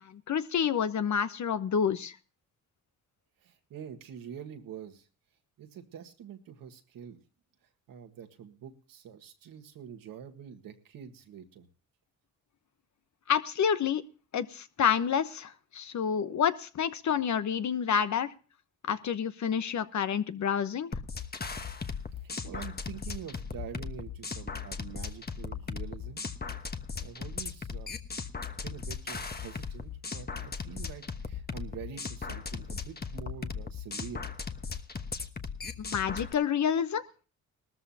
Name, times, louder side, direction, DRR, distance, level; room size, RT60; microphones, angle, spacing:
voice 1, 0.0-2.1 13.3-14.0 14.3-18.3 18.9-20.9 35.8-37.0, left 7 dB, 55° left, 12 dB, 1.0 m, -28 dB
voice 2, 3.4-5.1 5.6-7.2 7.9-11.7 22.1-26.2 26.9-27.9 28.6-34.3, right 8 dB, 80° right, 5 dB, 1.7 m, -45 dB
sound 1, 20.9-36.3, left 5 dB, 30° left, 1.2 m, -37 dB
18.5 x 13.5 x 2.8 m, 0.36 s
cardioid pair, 70°, 34 cm